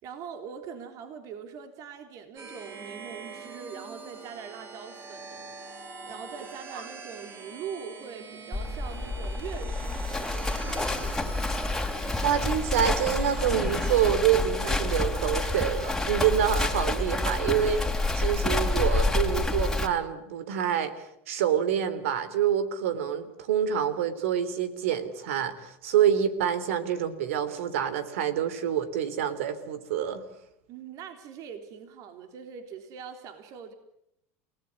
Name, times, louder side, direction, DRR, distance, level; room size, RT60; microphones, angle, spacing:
voice 1, 0.0-5.5 6.1-11.3 30.7-33.7, right 7 dB, 55° right, 7 dB, 3.6 m, -42 dB
sound 1, 2.4-14.1, right 4 dB, 35° right, 6.4 m, -44 dB
Livestock farm animals working animals, 8.5-19.9, left 2 dB, 5° left, 3.7 m, -28 dB
voice 2, 12.2-30.2, right 9 dB, 85° right, 14 dB, 3.3 m, -27 dB
29.5 x 18.5 x 9.8 m, 0.79 s
supercardioid pair, 110°, 7 cm